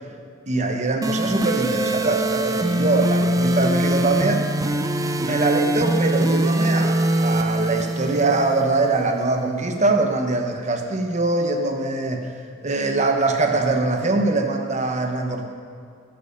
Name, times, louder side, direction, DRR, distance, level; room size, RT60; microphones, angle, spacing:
voice 1, 0.5-4.4 5.2-12.3 12.6-15.4, right 3 dB, 35° right, 4 dB, 1.0 m, -22 dB
sound 1, 1.0-9.0, right 1 dB, 15° right, 0.6 m, -23 dB
12.5 x 9.0 x 5.3 m, 2.3 s
head